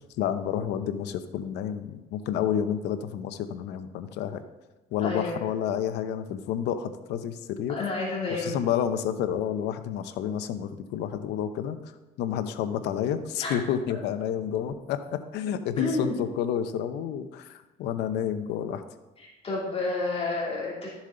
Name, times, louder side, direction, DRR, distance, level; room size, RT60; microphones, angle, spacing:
voice 1, 0.2-4.4 4.9-7.8 8.3-11.8 12.2-18.8, left 9 dB, 85° left, 10 dB, 0.8 m, -30 dB
voice 2, 5.0-5.4 7.7-8.7 13.4-13.5 15.8-16.2 19.2-20.9, left 3 dB, 35° left, -4 dB, 2.9 m, -30 dB
13.0 x 7.2 x 3.9 m, 1.1 s
cardioid pair, 110°, 17 cm